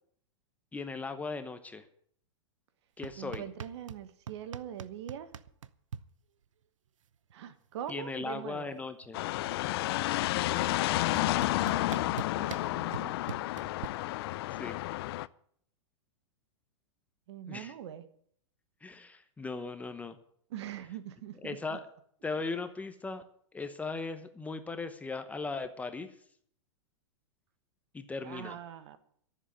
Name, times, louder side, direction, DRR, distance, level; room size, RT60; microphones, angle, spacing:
voice 1, 0.7-1.9 3.0-3.5 7.9-9.2 14.6-14.8 17.5-17.7 18.8-20.2 21.4-21.9 22.2-23.2 23.5-26.1 27.9-28.6, left 4 dB, 10° left, 9 dB, 0.9 m, -38 dB
sound 1, 3.0-4.0 4.3-6.0 7.3-7.4 7.6-8.1 8.3-9.7 10.6-10.7 11.2-13.9, right 8 dB, 90° right, 0.8 m, -43 dB
voice 2, 3.2-5.3 7.3-8.7 10.4-13.4 17.3-18.0 20.5-21.6 28.2-29.0, right 10 dB, 65° right, 11 dB, 1.6 m, -43 dB
sound 2, 9.1-15.3, left 17 dB, 55° left, 0.5 m, -31 dB
13.5 x 7.5 x 9.3 m, 0.63 s
hypercardioid pair, 140°, 16 cm